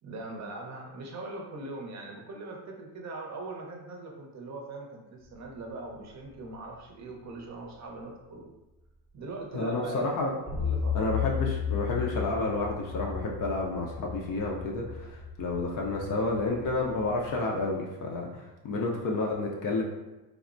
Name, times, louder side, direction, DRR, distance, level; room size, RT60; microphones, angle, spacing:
voice 1, 0.0-8.5 9.1-10.1 10.6-11.0, right 2 dB, 35° right, 0 dB, 0.6 m, -41 dB
voice 2, 9.5-10.3 10.9-19.8, left 3 dB, 45° left, -1 dB, 0.5 m, -30 dB
sound 1, 10.5-17.4, left 7 dB, ahead, 0.7 m, -34 dB
3.2 x 2.0 x 2.5 m, 1.0 s
supercardioid pair, 95°, 47 cm